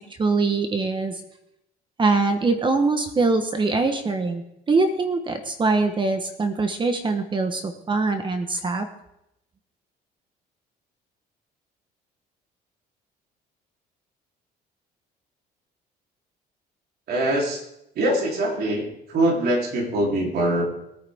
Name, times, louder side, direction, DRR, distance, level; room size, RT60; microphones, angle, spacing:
voice 1, 0.2-1.2 2.0-8.9, right 3 dB, 30° right, 7 dB, 1.2 m, -23 dB
voice 2, 17.1-17.7 18.0-20.6, right 1 dB, 65° right, -1 dB, 3.6 m, -23 dB
21.0 x 9.6 x 3.6 m, 0.84 s
cardioid pair, 110°, 17 cm